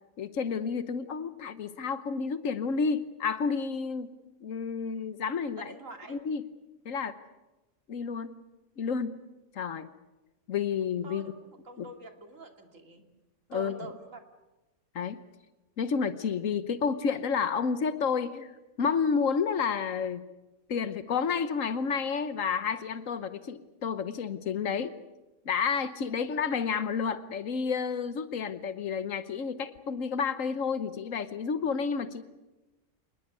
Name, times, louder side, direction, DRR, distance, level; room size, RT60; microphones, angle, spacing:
voice 1, 0.2-4.1 4.4-5.7 6.1-6.5 6.8-7.2 7.9-8.4 8.8-9.2 9.5-9.9 10.5-11.2 11.8-11.9 13.5-13.8 14.9-15.2 15.8-18.5 18.8-20.3 20.7-25.0 25.4-32.2, left 6 dB, 90° left, 12 dB, 1.4 m, -30 dB
voice 2, 5.6-6.2 11.0-13.0 13.5-14.2, right 3 dB, 85° right, 5 dB, 3.0 m, -45 dB
26.5 x 20.5 x 8.3 m, 1.0 s
omnidirectional pair, 1.3 m